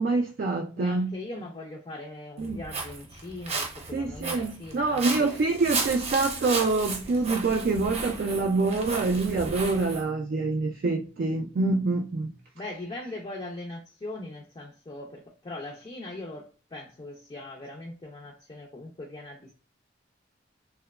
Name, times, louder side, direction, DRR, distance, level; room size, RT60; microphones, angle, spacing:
voice 1, 0.0-1.1 2.4-2.6 3.9-12.3, right 3 dB, 50° right, 0.3 m, -26 dB
voice 2, 0.7-5.4 12.6-19.5, left 2 dB, 25° left, 0.4 m, -40 dB
Walk footsteps, 2.4-10.0, right 3 dB, 35° right, 0.7 m, -34 dB
2.9 x 2.1 x 2.2 m
head